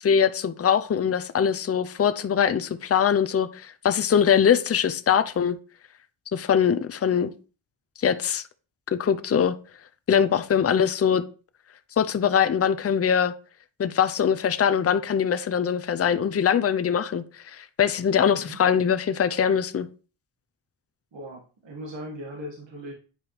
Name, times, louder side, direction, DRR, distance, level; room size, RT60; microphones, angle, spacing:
voice 1, 0.0-5.6 6.3-7.3 8.0-8.4 8.9-9.6 10.1-11.2 12.0-13.3 13.8-17.2 17.5-19.9, left 8 dB, 30° left, 0.6 m, -22 dB
voice 2, 18.3-18.6 21.1-22.9, equal, 60° right, 1.8 m, -39 dB
8.9 x 4.7 x 3.2 m
cardioid pair, 75°, 49 cm